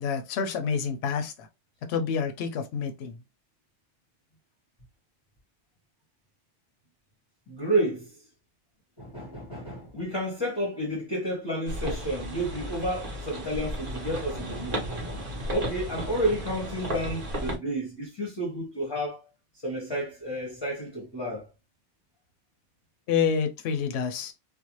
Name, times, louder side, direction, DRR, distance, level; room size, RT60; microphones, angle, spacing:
voice 1, 0.0-1.5 1.9-3.2 23.1-24.3, left 6 dB, 70° left, 0.8 m, -28 dB
voice 2, 7.5-8.1 9.0-19.2 19.5-21.4, right 1 dB, 25° left, 0.7 m, -31 dB
sound 1, 11.7-17.6, right 1 dB, 50° right, 0.9 m, -34 dB
2.5 x 2.0 x 2.9 m
omnidirectional pair, 1.2 m